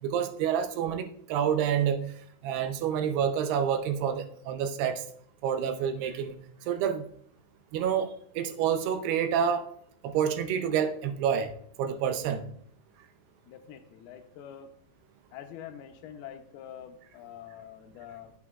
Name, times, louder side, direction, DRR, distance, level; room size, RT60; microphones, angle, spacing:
voice 1, 0.0-2.0 2.4-5.0 5.4-6.4 6.7-7.1 7.7-9.7 10.0-11.5 11.8-12.4, right 8 dB, 85° right, 8 dB, 2.8 m, -28 dB
voice 2, 13.5-14.7 15.3-18.3, left 9 dB, 80° left, 6 dB, 2.7 m, -45 dB
11.0 x 8.7 x 2.4 m, 0.66 s
omnidirectional pair, 4.6 m